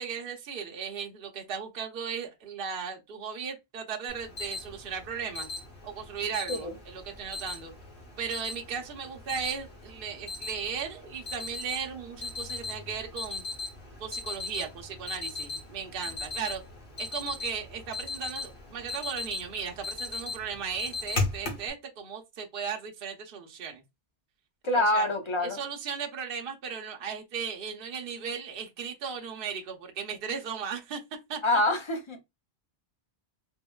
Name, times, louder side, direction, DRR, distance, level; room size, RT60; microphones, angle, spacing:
voice 1, 0.0-5.5 5.8-7.7 8.2-13.4 14.0-16.6 17.0-23.8 24.7-25.1 25.4-31.0 31.3-31.4, right 6 dB, 60° right, 0.8 m, -36 dB
Alarm, 4.1-21.7, left 3 dB, 55° left, 1.1 m, -38 dB
voice 2, 24.6-25.6 31.4-32.2, left 1 dB, 35° left, 0.6 m, -26 dB
3.6 x 2.1 x 2.2 m
omnidirectional pair, 1.1 m